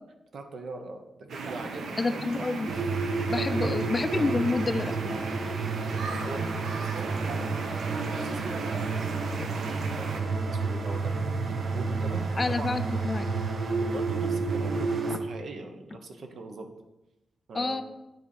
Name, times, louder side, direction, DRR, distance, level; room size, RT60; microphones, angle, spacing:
voice 1, 0.3-2.4 3.3-3.7 4.2-4.3 5.6-13.0 13.7-16.7 17.5-17.8, right 3 dB, 65° right, 5 dB, 1.1 m, -42 dB
sound 1, 1.3-10.2, right 3 dB, 90° right, 1.1 m, -37 dB
voice 2, 2.0-2.7 3.3-5.2 12.4-13.3 17.5-17.8, left 3 dB, 25° left, 10 dB, 0.4 m, -28 dB
sound 2, 2.7-15.2, right 4 dB, 50° right, 0.8 m, -30 dB
9.5 x 4.2 x 7.2 m, 0.98 s
wide cardioid pair, 175°, 0 cm